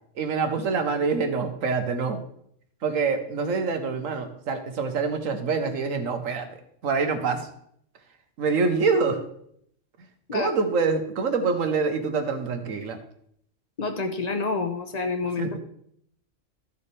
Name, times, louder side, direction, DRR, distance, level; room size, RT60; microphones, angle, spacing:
voice 1, 0.2-2.2 2.8-7.5 8.4-9.2 10.3-13.0 15.4-15.6, right 4 dB, 85° right, 7 dB, 1.4 m, -26 dB
voice 2, 13.8-15.6, left 4 dB, 35° left, 6 dB, 1.0 m, -28 dB
13.5 x 7.0 x 3.3 m, 0.69 s
omnidirectional pair, 1.3 m